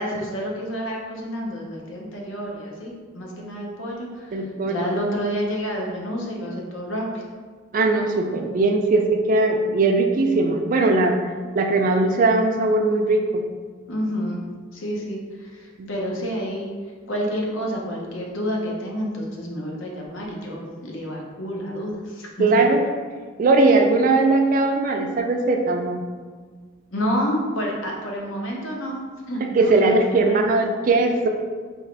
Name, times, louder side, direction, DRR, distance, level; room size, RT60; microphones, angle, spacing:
voice 1, 0.0-7.2 13.9-14.4 14.7-16.7 17.0-22.5 26.9-29.0 29.3-30.6, equal, 70° left, -1 dB, 0.8 m, -29 dB
voice 2, 4.3-4.8 7.7-11.2 11.6-13.4 15.8-15.9 22.4-22.8 23.4-26.0 29.6-31.3, right 3 dB, 40° right, 3 dB, 0.3 m, -19 dB
3.6 x 2.9 x 3.3 m, 1.5 s
head